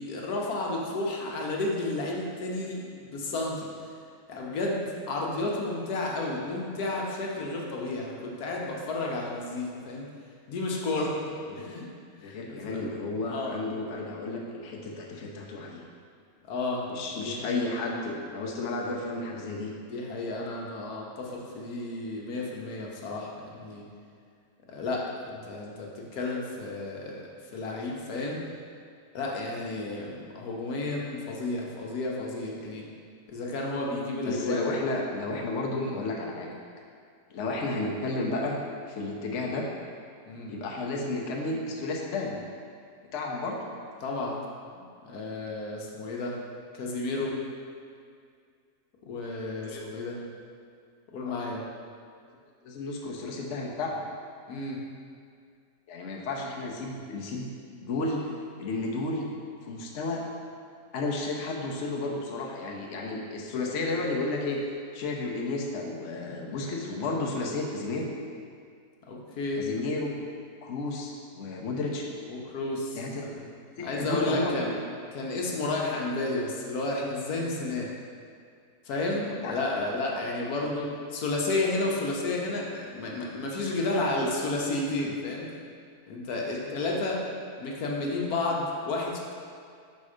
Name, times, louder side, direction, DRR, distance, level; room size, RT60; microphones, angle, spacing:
voice 1, 0.0-3.7 4.3-10.1 10.5-11.2 11.6-11.9 12.3-12.8 13.3-13.6 16.5-16.9 17.1-17.7 19.8-23.9 24.7-28.4 29.1-32.9 33.3-34.6 35.8-36.0 40.3-40.5 44.0-44.4 44.7-46.3 46.7-47.3 49.0-50.2 51.1-51.6 54.5-54.8 69.0-69.7 72.3-73.0 73.8-74.7 75.1-77.9 78.9-85.5 86.1-87.3 87.6-89.2, left 2 dB, 75° left, -2 dB, 1.3 m, -32 dB
voice 2, 12.1-15.8 16.9-19.7 34.2-36.5 37.3-38.6 38.9-39.7 40.5-42.4 43.1-43.6 49.6-49.9 51.2-51.4 52.6-54.0 55.9-57.5 57.8-58.3 58.6-59.3 59.7-60.2 60.9-64.6 64.9-68.1 69.6-70.1 70.6-72.0 73.0-73.2 73.8-74.8 75.3-75.4 79.3-79.6 86.6-86.7, left 2 dB, 60° left, -1 dB, 0.9 m, -32 dB
5.3 x 4.2 x 4.9 m, 2.2 s
omnidirectional pair, 1.7 m